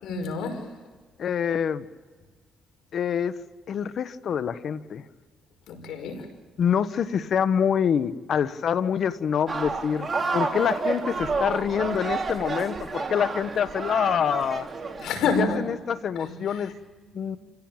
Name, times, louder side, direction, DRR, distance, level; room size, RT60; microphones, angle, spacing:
voice 1, 0.0-0.7 5.7-6.3 15.0-15.6 16.2-16.3 17.2-17.3, left 4 dB, 80° left, 5.2 m, -27 dB
voice 2, 1.2-1.8 2.9-3.4 3.7-5.0 6.6-14.7 15.4-16.7 17.1-17.4, left 8 dB, 60° left, 1.2 m, -26 dB
sound 1, 9.5-15.1, right 4 dB, 30° right, 3.3 m, -30 dB
27.0 x 17.0 x 8.9 m
cardioid pair, 90°, 0 cm